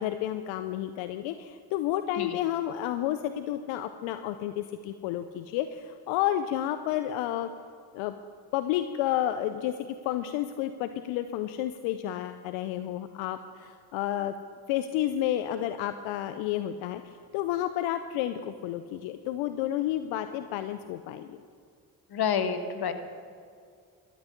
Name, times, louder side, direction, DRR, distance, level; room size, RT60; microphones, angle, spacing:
voice 1, 0.0-7.5 7.9-8.1 8.5-9.7 10.0-14.3 14.7-21.4, left 12 dB, 80° left, 10 dB, 0.6 m, -31 dB
voice 2, 22.1-22.9, left 7 dB, 55° left, 9 dB, 1.3 m, -28 dB
13.0 x 6.2 x 9.7 m, 2.2 s
hypercardioid pair, 45°, 46 cm